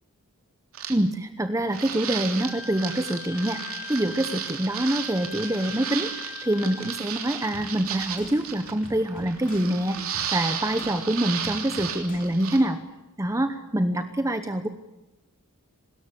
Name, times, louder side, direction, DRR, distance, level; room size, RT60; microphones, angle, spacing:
sound 1, 0.7-0.9 1.7-12.6, right 8 dB, 65° right, 3.3 m, -34 dB
voice 1, 0.9-12.8 13.2-14.7, right 1 dB, 15° right, 8 dB, 0.9 m, -26 dB
Wind instrument woodwind instrument, 2.4-7.1, left 6 dB, 60° left, 2.6 m, -41 dB
sound 2, 7.5-12.7, equal, 40° left, 3.0 m, -45 dB
24.0 x 13.5 x 10.0 m, 1.0 s
head